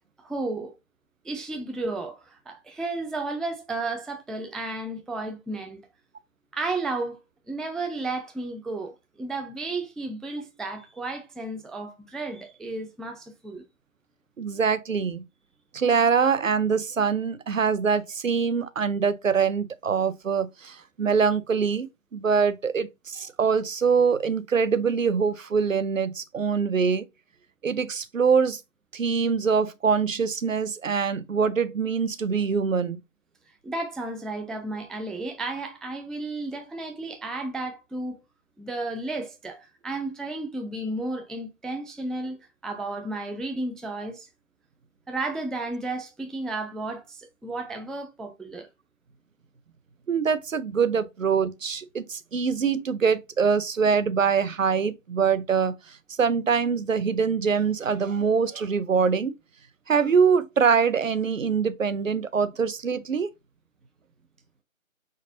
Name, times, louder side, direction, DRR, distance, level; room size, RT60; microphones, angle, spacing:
voice 1, 0.2-0.7 1.2-5.8 6.5-7.2 7.5-13.6 33.6-38.2 38.6-42.4 42.6-44.3 45.1-48.7, right 2 dB, ahead, 0.3 m, -33 dB
voice 2, 14.4-15.3 15.7-27.1 27.6-28.6 28.9-33.0 50.1-59.3 59.9-63.3, right 6 dB, 65° right, 0.6 m, -24 dB
4.2 x 3.8 x 2.7 m
figure-of-eight pair, 160°, 41 cm